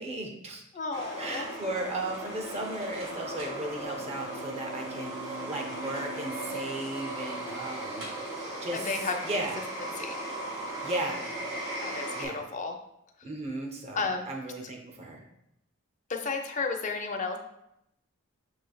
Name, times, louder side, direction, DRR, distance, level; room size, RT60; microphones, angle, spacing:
voice 1, 0.0-0.6 1.2-8.1 8.6-9.6 10.8-11.3 12.1-12.5 13.2-15.2, right 1 dB, 30° right, 2 dB, 0.6 m, -36 dB
voice 2, 0.7-1.5 8.7-9.2 10.0-10.2 11.8-12.7 13.9-14.3 16.1-17.4, left 4 dB, 35° left, 4 dB, 0.4 m, -32 dB
sound 1, 0.9-12.3, right 2 dB, 60° right, 1.6 m, -37 dB
Bowed string instrument, 3.0-8.5, equal, 85° right, 1.0 m, -48 dB
6.6 x 3.2 x 2.3 m, 0.81 s
head